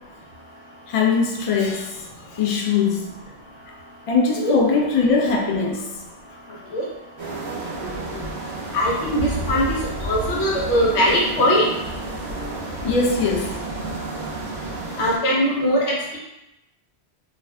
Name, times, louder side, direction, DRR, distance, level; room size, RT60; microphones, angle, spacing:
voice 1, 0.9-2.0 2.3-3.1 4.1-5.9 6.6-6.7 12.8-13.6, left 4 dB, 65° left, 0 dB, 0.3 m, -21 dB
sound 1, 7.2-15.2, right 2 dB, 50° right, 0.8 m, -31 dB
voice 2, 8.7-9.7 10.0-11.7 15.0-15.9, equal, 85° left, -3 dB, 1.0 m, -20 dB
2.4 x 2.3 x 3.2 m, 0.90 s
omnidirectional pair, 1.1 m